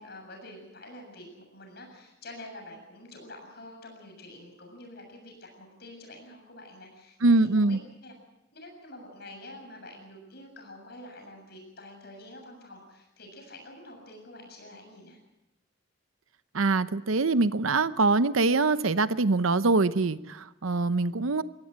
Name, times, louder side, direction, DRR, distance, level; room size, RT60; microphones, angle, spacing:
voice 1, 0.0-8.1 8.5-15.2, left 1 dB, 50° left, 2 dB, 7.2 m, -47 dB
voice 2, 7.2-7.8 16.5-21.4, right 3 dB, 85° right, 14 dB, 0.8 m, -24 dB
23.5 x 17.0 x 7.6 m, 0.90 s
head